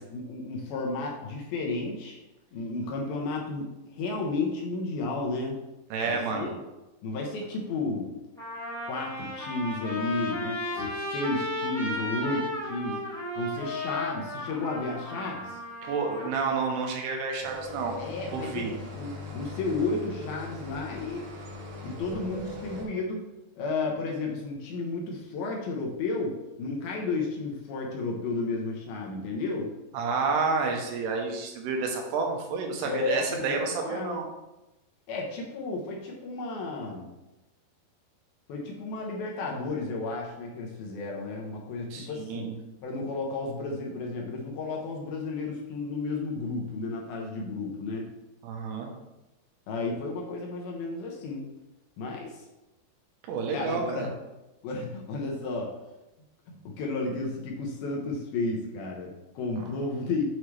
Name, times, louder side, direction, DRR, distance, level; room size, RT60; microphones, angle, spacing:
voice 1, 0.0-2.2 2.5-5.6 6.0-6.6 7.0-8.1 8.9-13.0 13.4-15.6 18.0-21.3 21.8-23.3 23.6-29.8 32.8-33.5 33.8-34.2 35.1-37.1 38.5-42.5 42.8-48.1 49.7-51.5 52.0-52.4 53.5-54.1 54.6-55.8 56.5-60.2, left 3 dB, 75° left, -1 dB, 2.5 m, -32 dB
voice 2, 5.9-6.5 15.8-18.0 18.3-18.8 29.9-34.3 41.9-42.6 48.4-48.9 53.3-54.1 59.6-59.7, right 4 dB, 85° right, 2 dB, 2.9 m, -30 dB
Trumpet, 7.6-7.7 8.4-16.3, left 1 dB, 5° left, 0.4 m, -35 dB
sound 1, 17.4-22.9, left 2 dB, 65° right, 2.2 m, -40 dB
7.2 x 4.7 x 3.2 m, 1.0 s
omnidirectional pair, 4.7 m